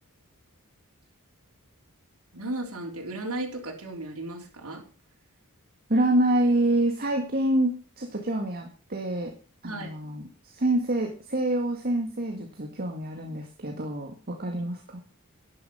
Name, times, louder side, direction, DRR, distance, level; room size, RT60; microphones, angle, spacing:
voice 1, 2.3-4.8 9.7-9.9, right 2 dB, 80° right, -2 dB, 3.9 m, -35 dB
voice 2, 5.9-9.3 9.6-10.3 10.5-15.0, right 1 dB, 45° right, 3 dB, 1.9 m, -26 dB
12.0 x 10.5 x 5.6 m, 0.36 s
head